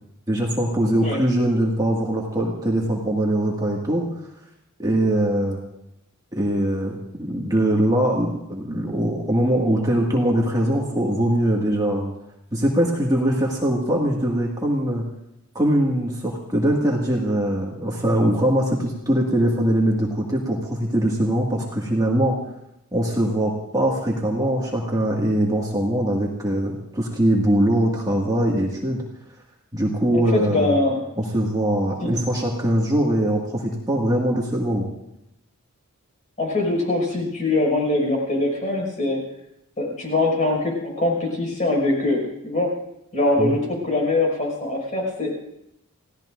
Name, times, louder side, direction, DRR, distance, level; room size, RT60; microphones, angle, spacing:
voice 1, 0.3-4.1 4.8-5.6 6.3-12.1 12.5-15.0 15.5-22.4 22.9-29.0 29.7-30.8 31.2-34.9 43.4-43.6, right 1 dB, 15° right, -2 dB, 2.0 m, -22 dB
voice 2, 30.1-31.1 32.0-32.2 36.4-39.2 39.8-42.7 43.1-45.4, left 2 dB, 35° left, 0 dB, 5.8 m, -23 dB
30.0 x 16.5 x 2.6 m, 0.82 s
head